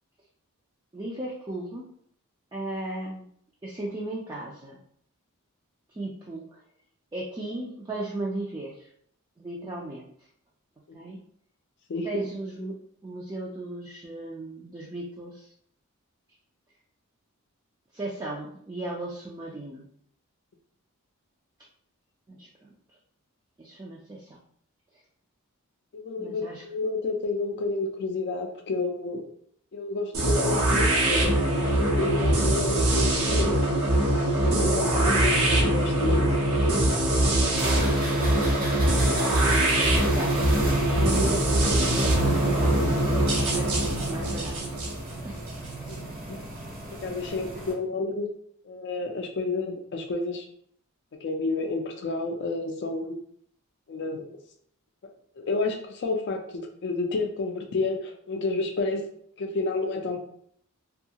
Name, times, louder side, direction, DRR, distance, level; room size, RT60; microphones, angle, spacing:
voice 1, 0.9-1.9 2.5-3.3 3.6-4.8 5.9-6.6 7.1-8.9 9.4-10.1 10.9-11.2 12.0-12.8 13.0-15.5 17.9-19.9 22.3-23.0 23.6-24.4 26.2-26.6 40.0-40.4 40.9-43.0 43.4-44.9 45.2-45.4 47.2-47.3, right 2 dB, 20° right, -4 dB, 0.4 m, -36 dB
voice 2, 25.9-29.3 29.7-31.7 32.0-33.8 34.3-36.3 45.9-46.4 46.9-48.3 48.6-50.5 51.2-53.2 53.9-54.3 55.4-59.0 59.4-60.2, left 3 dB, 50° left, 3 dB, 0.4 m, -30 dB
sound 1, 30.1-46.0, right 1 dB, 90° right, 0.9 m, -23 dB
sound 2, 37.5-47.7, right 1 dB, 40° right, 0.7 m, -33 dB
2.7 x 2.3 x 2.7 m, 0.64 s
head